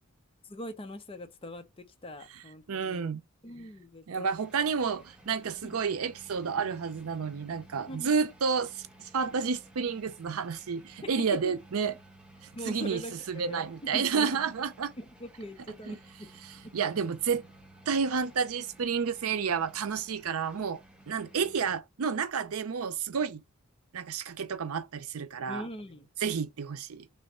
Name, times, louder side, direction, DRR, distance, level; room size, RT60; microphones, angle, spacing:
voice 1, 0.4-3.1 3.4-4.3 5.6-5.7 7.9-8.1 11.4-11.5 12.5-14.3 15.0-16.3 25.5-26.1, equal, 25° left, 0.7 m, -42 dB
voice 2, 2.3-3.2 4.1-11.9 12.4-14.9 15.9-16.0 16.4-17.5 17.9-23.4 23.9-25.7 26.2-27.1, right 6 dB, 80° right, 0.5 m, -31 dB
sound 1, 4.3-21.8, right 1 dB, 5° right, 0.8 m, -55 dB
3.4 x 3.1 x 4.2 m
head